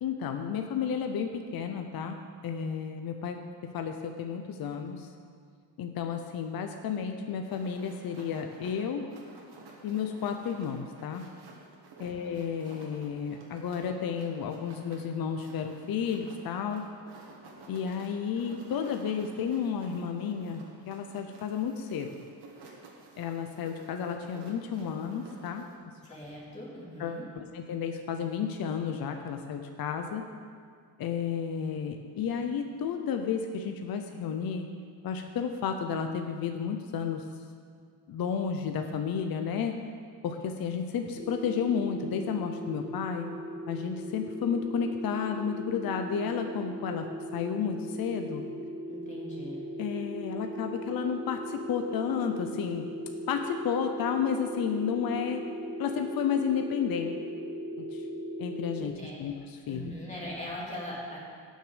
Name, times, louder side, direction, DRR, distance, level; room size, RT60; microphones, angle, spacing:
voice 1, 0.0-5.1 5.8-9.1 9.8-11.3 12.0-16.9 17.7-22.1 23.2-25.7 27.0-30.3 31.0-34.7 35.0-37.2 38.1-39.8 40.2-43.3 43.7-48.4 49.8-52.9 53.3-55.4 55.8-57.2 57.8-58.0 58.4-58.9 59.2-59.3 59.7-59.9, left 7 dB, 50° left, 5 dB, 0.8 m, -32 dB
sound 1, 7.5-25.7, right 3 dB, 60° right, 2.1 m, -52 dB
voice 2, 12.1-12.4 26.1-27.2 48.9-49.6 58.8-59.2 59.7-61.2, equal, 15° left, -6 dB, 2.8 m, -41 dB
sound 2, 41.1-58.9, equal, 5° right, 1.6 m, -38 dB
17.5 x 6.6 x 5.1 m, 2.2 s
cardioid pair, 155°, 45 cm